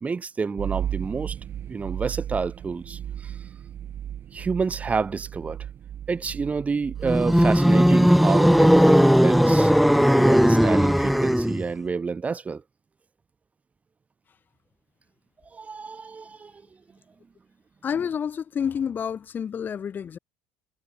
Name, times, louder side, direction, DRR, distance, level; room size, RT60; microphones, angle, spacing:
voice 1, 0.0-1.4 1.7-3.4 4.3-5.6 6.1-9.7 10.1-12.6 15.5-16.6, right 5 dB, 25° right, 2.3 m, -29 dB
sound 1, 0.6-11.5, right 10 dB, 45° right, 0.6 m, -36 dB
sound 2, 7.0-11.7, equal, ahead, 0.6 m, -17 dB
voice 2, 17.8-20.2, left 7 dB, 35° left, 0.9 m, -29 dB
hypercardioid pair, 65°, 5 cm